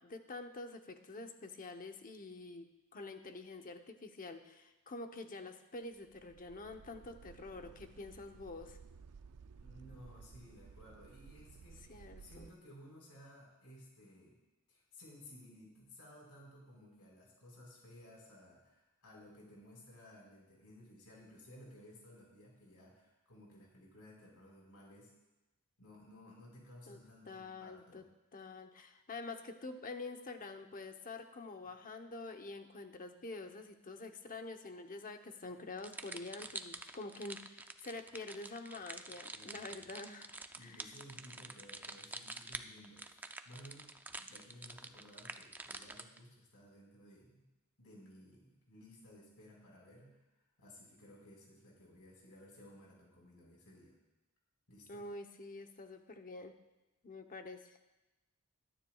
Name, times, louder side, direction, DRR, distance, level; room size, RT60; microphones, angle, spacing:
voice 1, 0.0-8.8 11.9-12.5 26.9-27.0 27.3-28.0 28.3-40.3 40.6-40.8 54.9-56.5 57.0-57.8, left 3 dB, 40° left, 5 dB, 0.9 m, -47 dB
sound 1, 5.9-12.5, right 5 dB, 80° right, 0.4 m, -56 dB
voice 2, 9.6-14.4 14.7-25.1 25.8-28.0 39.3-39.8 40.5-47.4 47.8-50.2 50.6-54.0 54.7-55.1, left 1 dB, 80° left, -2 dB, 4.5 m, -57 dB
sound 2, 35.8-46.2, right 2 dB, 10° right, 0.4 m, -47 dB
21.5 x 10.0 x 2.4 m, 1.0 s
head